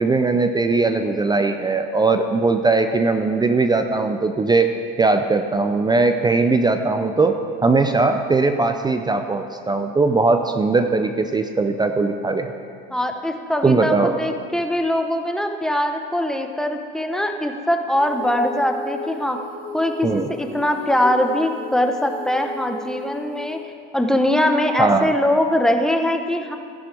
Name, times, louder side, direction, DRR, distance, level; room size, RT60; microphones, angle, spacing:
voice 1, 0.0-4.7 5.0-7.4 7.6-12.5 13.6-14.1 20.0-20.3 24.8-25.1, right 3 dB, 15° right, 7 dB, 0.5 m, -19 dB
voice 2, 12.9-19.4 19.7-23.6 23.9-26.6, left 1 dB, ahead, 4 dB, 1.0 m, -22 dB
Female singing, 17.9-23.6, left 1 dB, 65° right, 3.5 m, -35 dB
14.5 x 11.0 x 3.4 m, 2.2 s
hypercardioid pair, 90°, 29 cm